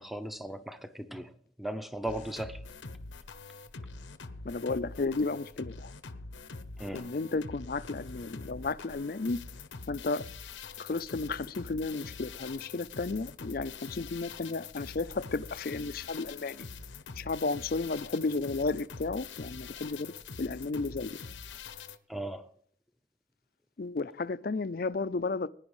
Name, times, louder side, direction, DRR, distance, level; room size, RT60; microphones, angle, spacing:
voice 1, 0.0-1.3 1.6-2.6 6.8-7.1 22.1-22.5, right 1 dB, ahead, 0.7 m, -37 dB
sound 1, 2.1-22.0, left 4 dB, 85° left, 0.9 m, -45 dB
voice 2, 4.4-5.9 6.9-9.6 9.9-10.3 10.8-16.7 17.2-21.2 23.8-25.5, left 3 dB, 50° left, 0.5 m, -33 dB
21.0 x 10.5 x 3.2 m
head